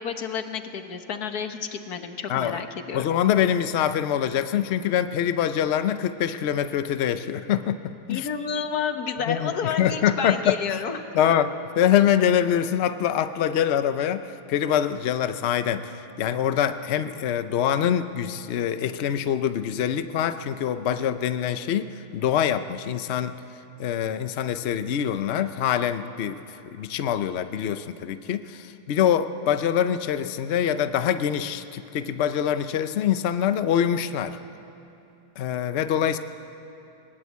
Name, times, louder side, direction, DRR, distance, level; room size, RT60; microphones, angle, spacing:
voice 1, 0.0-3.1 8.1-11.5, left 6 dB, 55° left, 7 dB, 1.6 m, -30 dB
voice 2, 2.9-8.3 9.3-10.6 11.1-23.3 23.8-34.4 35.4-36.2, left 9 dB, 90° left, 11 dB, 0.5 m, -24 dB
19.5 x 19.5 x 8.3 m, 2.9 s
omnidirectional pair, 2.1 m